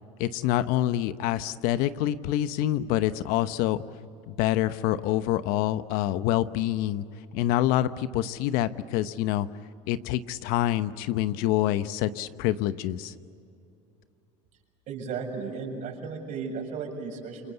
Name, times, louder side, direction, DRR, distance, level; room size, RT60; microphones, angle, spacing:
voice 1, 0.2-3.8 4.3-7.0 7.3-9.5 9.9-13.1, left 13 dB, 65° left, 13 dB, 1.0 m, -26 dB
voice 2, 14.9-17.5, right 5 dB, 55° right, 2 dB, 7.1 m, -35 dB
28.0 x 24.0 x 8.2 m, 2.6 s
supercardioid pair, 100°, 16 cm